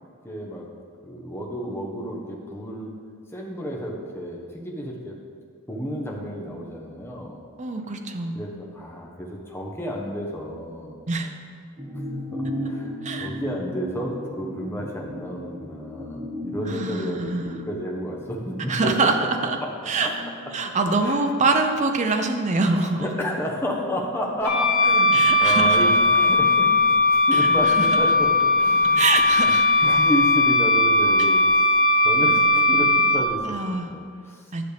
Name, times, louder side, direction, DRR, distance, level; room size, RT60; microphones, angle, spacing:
voice 1, 0.2-0.7 1.0-2.9 3.3-5.1 5.7-7.4 8.3-11.0 12.3-18.9 19.6-19.7 20.0-20.1 21.0-21.2 22.1-22.3 23.0-28.3 28.6-29.0 29.8-31.6 32.0-34.5, equal, 10° left, -2 dB, 1.0 m, -31 dB
voice 2, 7.6-8.3 11.1-11.3 13.0-13.3 16.7-17.6 18.7-19.2 19.4-19.6 19.9-20.1 20.5-23.1 25.1-25.9 27.3-27.5 27.8-27.9 29.0-29.6 33.5-33.9 34.5-34.6, right 3 dB, 35° right, 5 dB, 0.6 m, -24 dB
sound 1, 11.8-21.6 21.9-22.0, left 1 dB, 15° right, 1.4 m, -36 dB
Wind instrument woodwind instrument, 24.4-33.2, left 2 dB, 30° left, 1.4 m, -18 dB
10.5 x 6.4 x 3.4 m, 2.1 s
head